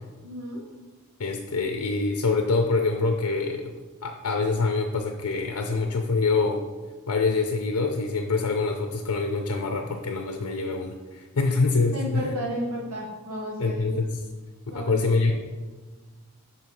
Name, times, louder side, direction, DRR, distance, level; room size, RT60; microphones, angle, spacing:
voice 1, 0.2-0.6 11.9-13.9 14.7-15.1, equal, 80° right, -3 dB, 1.1 m, -32 dB
voice 2, 1.2-3.7 4.0-6.6 7.1-12.3 13.6-14.1 14.7-15.3, left 3 dB, 75° left, 4 dB, 0.6 m, -25 dB
5.8 x 4.6 x 5.2 m, 1.3 s
head